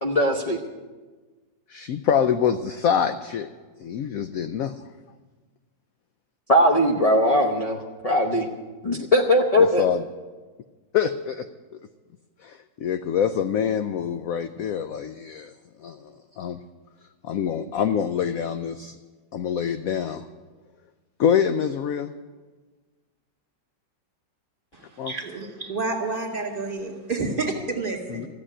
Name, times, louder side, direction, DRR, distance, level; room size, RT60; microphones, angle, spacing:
voice 1, 0.0-0.6 6.5-8.5 8.8-9.8, left 1 dB, 45° left, 1 dB, 0.5 m, -20 dB
voice 2, 1.7-3.5 3.8-4.7 8.9-9.1 9.6-10.0 10.9-11.5 12.4-15.5 15.8-16.6 17.2-19.0 19.3-20.3 21.2-22.1 25.0-25.1 28.1-28.3, left 8 dB, 75° left, 10 dB, 0.8 m, -25 dB
voice 3, 24.7-28.3, right 3 dB, 30° right, 1 dB, 2.2 m, -29 dB
14.0 x 7.5 x 9.8 m, 1.3 s
omnidirectional pair, 2.0 m